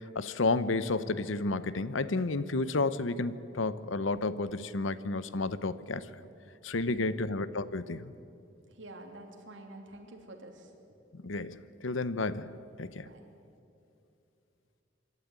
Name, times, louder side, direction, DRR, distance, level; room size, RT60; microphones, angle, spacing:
voice 1, 0.0-6.1 6.6-8.1 11.1-12.5 12.8-13.1, left 3 dB, 80° left, 0.8 m, -31 dB
voice 2, 6.8-7.2 8.7-10.7 13.0-13.2, right 1 dB, 70° right, 3.1 m, -48 dB
26.0 x 12.5 x 9.6 m
head